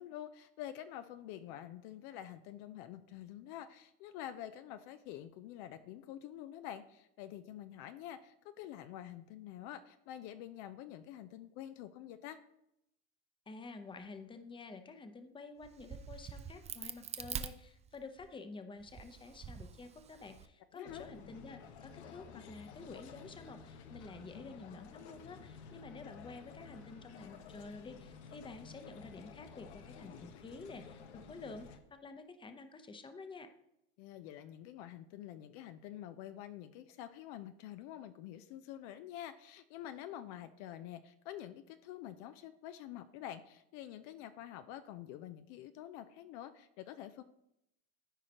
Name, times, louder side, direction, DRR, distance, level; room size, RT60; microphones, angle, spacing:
voice 1, 0.0-12.4 20.7-21.1 34.0-47.2, left 11 dB, 60° left, 10 dB, 0.6 m, -47 dB
voice 2, 13.5-31.0 31.3-33.5, left 3 dB, 15° left, 8 dB, 0.8 m, -50 dB
Crack, 15.6-18.3 18.8-20.5, right 7 dB, 20° right, 0.4 m, -45 dB
sound 1, 20.8-31.8, left 6 dB, 80° left, 1.0 m, -53 dB
14.0 x 4.9 x 3.0 m, 0.81 s
hypercardioid pair, 100°, 33 cm